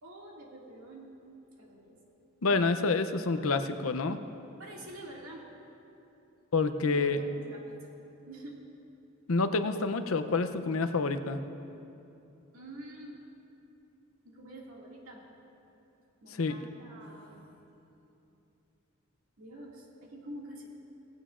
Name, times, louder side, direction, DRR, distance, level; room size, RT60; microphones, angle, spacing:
voice 1, 0.0-1.2 1.6-2.0 4.6-5.5 6.8-8.0 8.3-8.7 12.5-13.2 14.2-15.3 16.2-17.5 19.4-20.7, right 1 dB, 85° right, -2 dB, 2.3 m, -47 dB
voice 2, 2.4-4.2 6.5-7.2 9.3-11.4 16.4-16.6, left 3 dB, 75° left, 9 dB, 0.6 m, -28 dB
18.0 x 16.0 x 2.5 m, 2.8 s
head